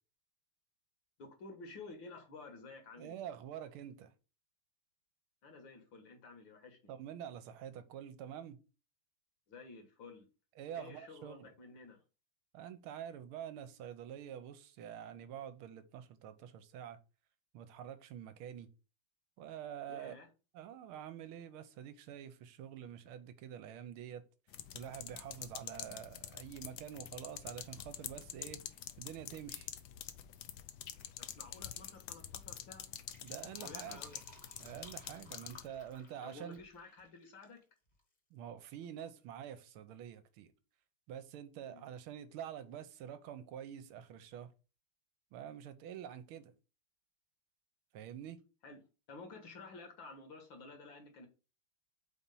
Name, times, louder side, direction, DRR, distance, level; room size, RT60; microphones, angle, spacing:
voice 1, 1.2-3.2 5.4-6.9 9.5-10.3 10.7-12.0 19.9-20.3 31.2-32.9 33.6-34.2 36.2-37.6 41.6-41.9 48.6-48.8 49.1-51.3, left 3 dB, 60° left, 2.0 m, -52 dB
voice 2, 3.0-4.1 6.9-8.6 10.6-11.5 12.5-17.0 17.5-18.7 19.4-20.1 20.5-24.2 24.7-28.6 29.0-29.7 33.2-34.0 34.6-36.6 38.3-40.5 41.1-44.5 45.3-46.5 47.9-48.4, right 9 dB, 80° right, 1.5 m, -47 dB
sound 1, 24.5-35.7, left 11 dB, 80° left, 0.9 m, -47 dB
Fill (with liquid), 32.9-37.6 37.9-38.0, left 2 dB, 25° left, 1.1 m, -59 dB
4.4 x 4.2 x 5.3 m
omnidirectional pair, 2.4 m